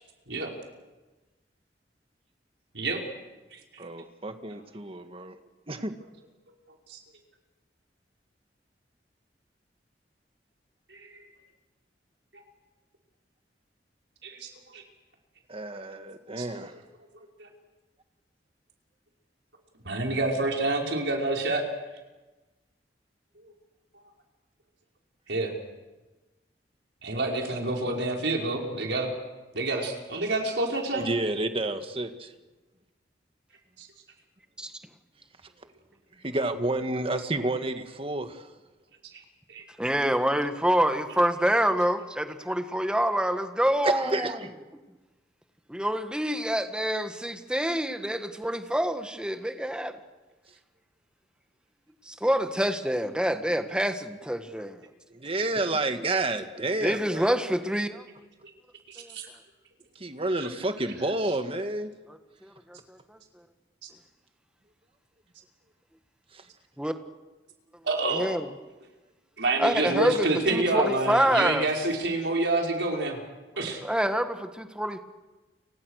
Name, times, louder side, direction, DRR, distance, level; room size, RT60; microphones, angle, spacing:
voice 1, 3.8-5.4 5.7-5.9 15.5-16.8 30.9-32.3 35.4-35.7 36.1-38.5 43.8-44.5 50.5-50.6 55.1-57.3 59.9-61.9 66.3-66.5, right 2 dB, 30° right, 7 dB, 1.8 m, -30 dB
voice 2, 10.9-11.2 14.2-14.8 16.4-16.5 17.4-17.5 19.8-21.6 25.3-25.5 27.0-29.1 29.5-31.1 33.8-33.9 39.5-39.6 58.9-59.3 67.8-68.3 69.4-73.2 73.6-73.8, right 2 dB, 85° right, 1 dB, 5.2 m, -28 dB
voice 3, 39.8-44.3 45.7-50.0 52.1-54.8 56.8-58.0 59.0-59.1 62.4-63.2 66.8-66.9 68.1-68.5 69.6-71.7 73.8-75.0, equal, 5° right, 7 dB, 1.6 m, -27 dB
30.0 x 25.5 x 6.6 m, 1.2 s
head